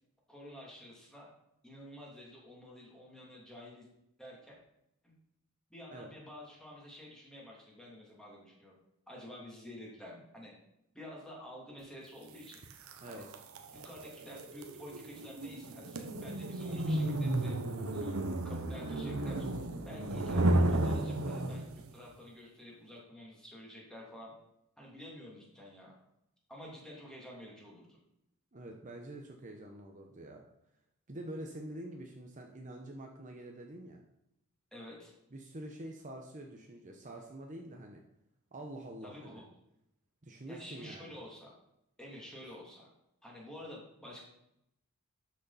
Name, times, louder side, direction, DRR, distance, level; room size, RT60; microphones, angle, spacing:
voice 1, 0.3-1.3 1.6-3.9 4.2-4.5 5.0-5.2 5.7-8.7 9.1-10.5 10.9-12.6 13.0-13.2 13.7-17.6 17.9-18.2 18.4-19.5 19.8-21.6 21.9-24.3 24.8-25.9 26.5-28.0 34.7-35.1 39.0-39.5 40.5-41.5 42.0-42.9 43.2-44.2, left 1 dB, 5° left, -4 dB, 2.8 m, -50 dB
sound 1, 12.5-21.9, right 1 dB, 70° right, 1.1 m, -33 dB
voice 2, 13.0-13.4 28.5-30.4 31.1-34.0 35.3-38.0 38.5-39.4 40.2-41.2, right 1 dB, 35° right, 2 dB, 0.9 m, -46 dB
12.0 x 6.5 x 4.2 m, 0.83 s
head